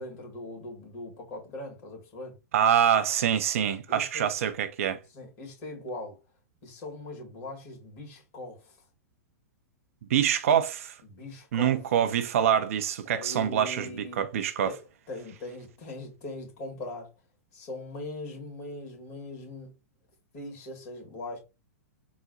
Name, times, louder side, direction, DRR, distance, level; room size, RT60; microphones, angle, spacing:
voice 1, 0.0-2.4 3.6-4.3 5.1-6.2 6.6-8.7 11.1-11.8 13.1-14.2 14.6-14.8 15.1-17.1 17.5-19.7 20.3-21.4, left 2 dB, 40° left, 2.0 m, -40 dB
voice 2, 2.5-5.0 10.1-11.0 11.5-14.8, right 9 dB, 55° right, 0.5 m, -25 dB
3.9 x 2.1 x 4.1 m
figure-of-eight pair, 105°, 9 cm